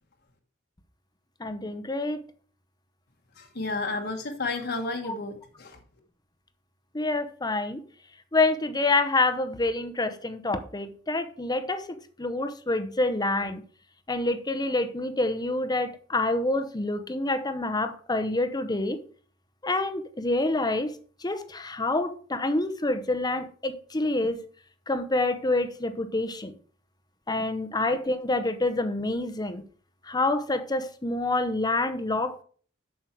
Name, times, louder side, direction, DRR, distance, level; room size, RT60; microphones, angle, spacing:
voice 1, 1.4-2.2 6.9-7.8 8.3-13.6 14.1-19.0 19.6-20.9 21.2-24.4 24.9-26.6 27.3-29.6 30.1-32.4, left 2 dB, 20° left, 0.8 m, -27 dB
voice 2, 3.4-5.8, left 3 dB, 55° left, 1.4 m, -32 dB
7.8 x 6.3 x 4.5 m
head